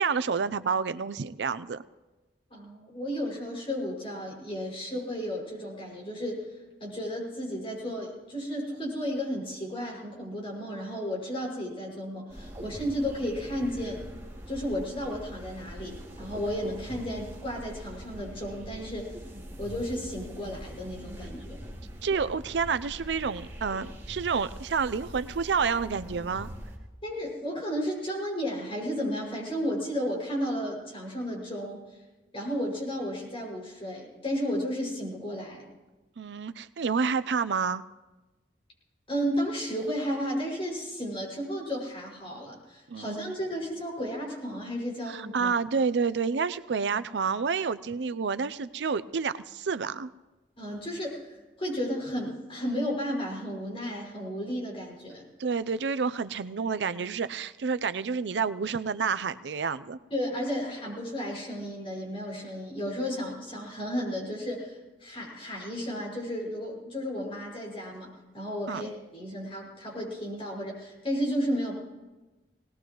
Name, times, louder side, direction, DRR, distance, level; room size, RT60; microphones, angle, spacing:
voice 1, 0.0-1.8 22.0-26.5 36.2-37.8 42.9-43.4 45.1-50.1 55.4-60.0 68.7-68.9, right 5 dB, 85° right, 14 dB, 0.5 m, -29 dB
voice 2, 2.5-6.5 6.8-14.0 14.5-19.1 19.6-21.7 27.0-31.8 32.3-35.7 39.1-45.6 50.6-55.3 60.1-71.8, equal, 35° left, -2 dB, 6.0 m, -33 dB
sound 1, 12.3-26.8, equal, 15° right, 2.9 m, -43 dB
19.5 x 19.0 x 3.1 m, 1.1 s
head